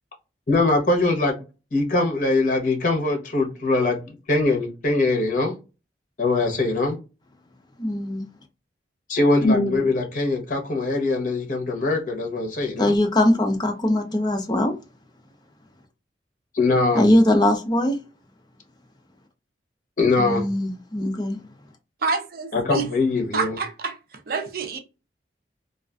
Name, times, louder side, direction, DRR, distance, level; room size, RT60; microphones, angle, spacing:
voice 1, 0.5-1.4 1.7-4.0 4.3-5.5 6.2-7.0 9.1-12.9 16.5-17.0 20.0-20.4 22.5-23.6, left 2 dB, 50° left, 0.8 m, -22 dB
voice 2, 7.8-8.3 12.8-14.7 16.9-18.0 20.2-21.4, left 1 dB, 25° left, 0.5 m, -21 dB
voice 3, 22.0-22.9 23.3-24.0 24.3-24.8, right 4 dB, 55° right, 0.5 m, -27 dB
2.4 x 2.4 x 2.2 m
head